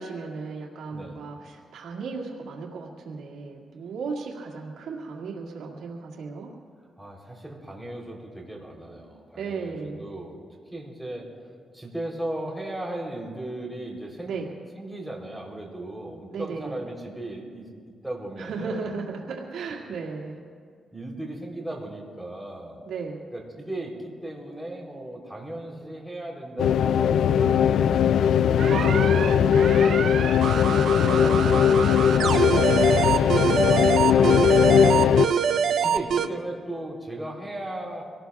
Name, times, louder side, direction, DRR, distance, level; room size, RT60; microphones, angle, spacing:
voice 1, 0.0-6.5 9.4-10.0 14.3-14.5 16.3-16.8 18.4-20.4 22.9-23.2 28.7-30.3 30.8-32.8, right 5 dB, 90° right, -2 dB, 2.0 m, -35 dB
voice 2, 0.9-1.2 7.0-10.4 10.7-11.4 11.7-14.5 14.8-17.7 18.0-18.9 20.9-22.8 23.3-28.5 31.0-31.5 32.0-32.2 32.6-34.5 34.8-38.1, right 1 dB, 5° right, -2 dB, 3.4 m, -37 dB
sound 1, 26.6-35.3, left 8 dB, 85° left, 0.3 m, -19 dB
sound 2, 28.6-36.3, right 7 dB, 70° right, 0.7 m, -25 dB
26.0 x 18.0 x 2.4 m, 2.1 s
cardioid pair, 90°, 0 cm